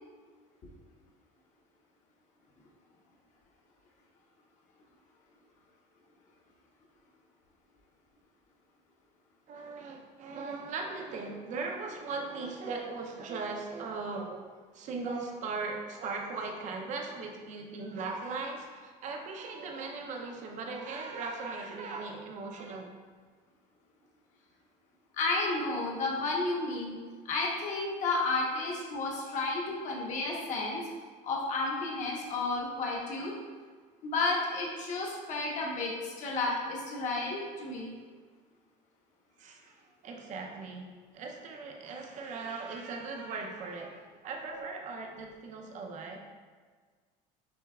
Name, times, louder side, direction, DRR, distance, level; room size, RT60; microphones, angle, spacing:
voice 1, 9.5-22.8 39.4-46.2, right 4 dB, 50° right, 2 dB, 0.6 m, -39 dB
voice 2, 25.1-27.0 27.2-30.8 31.2-33.3 34.0-37.9 44.5-44.6, left 3 dB, 45° left, -2 dB, 1.1 m, -32 dB
6.2 x 3.3 x 2.3 m, 1.5 s
cardioid pair, 135°, 17 cm